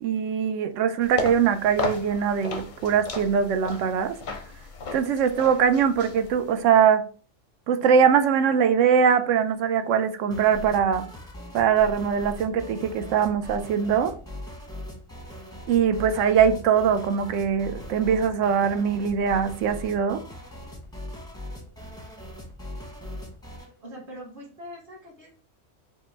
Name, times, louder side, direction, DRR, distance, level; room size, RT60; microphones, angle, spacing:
voice 1, 0.0-4.2 4.9-7.0 7.7-11.1 11.5-14.1 15.7-20.2, right 7 dB, 75° right, 0.9 m, -22 dB
sound 1, 1.0-6.6, left 4 dB, 50° left, 0.6 m, -35 dB
sound 2, 10.3-23.7, left 1 dB, 5° left, 0.6 m, -40 dB
voice 2, 23.6-25.3, equal, 45° right, 1.4 m, -43 dB
5.0 x 2.1 x 3.3 m
omnidirectional pair, 1.3 m